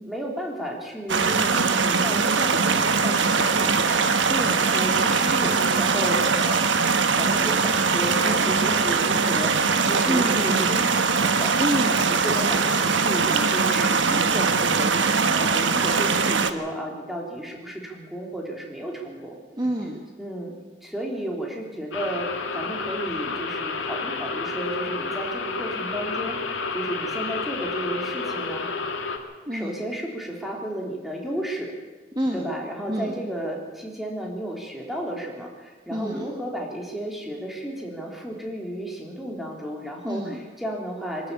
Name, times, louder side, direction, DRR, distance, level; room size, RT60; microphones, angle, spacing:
voice 1, 0.0-4.3 4.7-6.8 7.2-11.5 11.9-19.4 20.2-20.5 20.8-28.7 29.5-31.7 32.3-41.3, right 1 dB, ahead, -1 dB, 3.6 m, -33 dB
sound 1, 1.1-16.5, right 5 dB, 75° right, 1.3 m, -21 dB
voice 2, 4.3-4.7 10.0-10.7 11.6-12.1 19.6-20.0 29.5-29.8 32.1-32.5 32.9-33.2 35.9-36.3 40.0-40.4, equal, 20° right, 0 dB, 1.6 m, -28 dB
sound 2, 21.9-29.2, left 4 dB, 85° left, 2.3 m, -30 dB
23.5 x 13.0 x 8.8 m, 1.3 s
head